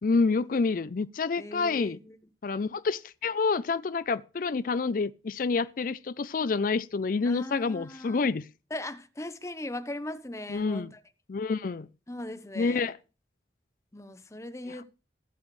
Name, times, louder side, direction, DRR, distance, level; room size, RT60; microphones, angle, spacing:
voice 1, 0.0-2.0 2.4-8.4 10.5-10.9 11.3-11.9 12.6-13.0, left 4 dB, 50° left, 0.4 m, -28 dB
voice 2, 1.4-2.2 7.2-8.3 8.7-11.0 12.1-12.9 13.9-14.8, left 1 dB, 15° left, 0.8 m, -39 dB
17.5 x 7.3 x 3.2 m
head